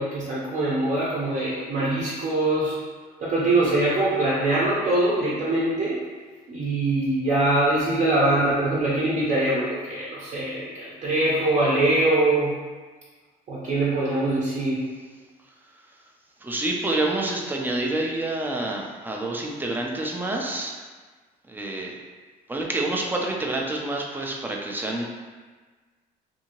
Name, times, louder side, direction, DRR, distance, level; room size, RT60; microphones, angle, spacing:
voice 1, 0.0-2.8 3.2-6.0 6.5-12.5 13.5-14.8, right 2 dB, 45° right, -7 dB, 0.8 m, -23 dB
voice 2, 16.4-20.8 21.5-22.0 22.5-25.0, right 2 dB, 10° right, -1 dB, 0.4 m, -28 dB
2.7 x 2.7 x 2.9 m, 1.4 s
cardioid pair, 110°, 17 cm